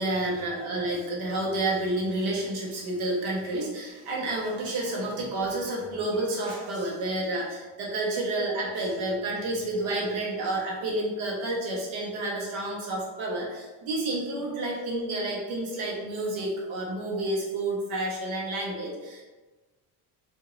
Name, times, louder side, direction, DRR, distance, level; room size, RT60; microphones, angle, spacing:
voice 1, 0.0-19.2, right 1 dB, 75° right, -2 dB, 1.2 m, -30 dB
3.6 x 2.7 x 3.2 m, 1.2 s
supercardioid pair, 85°, 48 cm